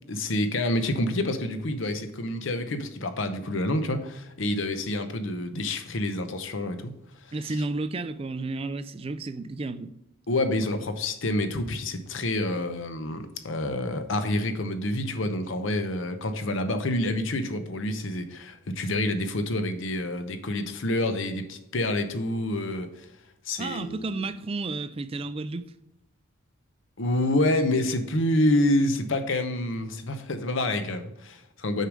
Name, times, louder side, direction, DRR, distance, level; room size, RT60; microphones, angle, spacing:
voice 1, 0.1-7.0 7.2-7.6 10.3-23.1 23.5-24.1 27.0-31.9, left 1 dB, 60° left, 0.7 m, -28 dB
voice 2, 7.3-9.9 23.6-25.7, right 3 dB, 25° right, 0.3 m, -32 dB
6.5 x 4.9 x 5.1 m
head